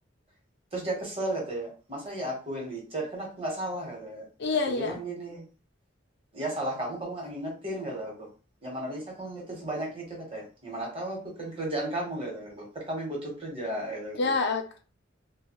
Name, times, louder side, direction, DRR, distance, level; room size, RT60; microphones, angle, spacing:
voice 1, 0.7-4.3 4.7-5.4 6.3-8.3 8.6-14.3, right 1 dB, 30° right, -1 dB, 1.0 m, -34 dB
voice 2, 4.4-5.0 14.1-14.8, left 4 dB, 60° left, 4 dB, 0.5 m, -27 dB
2.6 x 2.2 x 2.9 m, 0.35 s
head